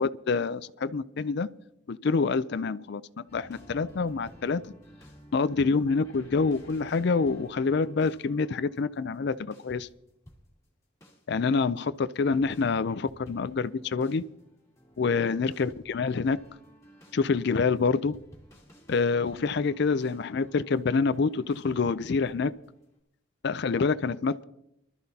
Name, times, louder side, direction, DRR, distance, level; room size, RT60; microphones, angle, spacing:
voice 1, 0.0-1.5 1.9-4.7 5.3-9.9 11.3-14.2 15.0-16.4 17.1-18.2 18.9-22.5 23.4-24.4, left 4 dB, 55° left, 15 dB, 0.4 m, -27 dB
sound 1, 3.3-10.7 11.0-11.3 12.3-22.9, equal, 15° left, 2.5 m, -53 dB
24.5 x 13.0 x 2.8 m, 0.79 s
head